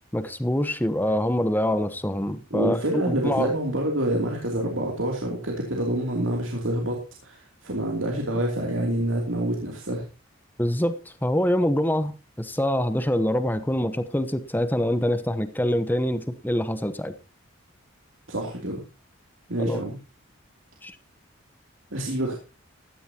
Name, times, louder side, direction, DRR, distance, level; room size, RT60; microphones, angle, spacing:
voice 1, 0.1-3.5 10.6-17.1 19.6-19.8 20.8-21.0, equal, 10° left, 1.0 m, -25 dB
voice 2, 2.5-10.0 18.3-18.8 19.5-20.0 21.9-22.3, right 1 dB, 70° right, 3.0 m, -27 dB
16.0 x 13.0 x 2.9 m
head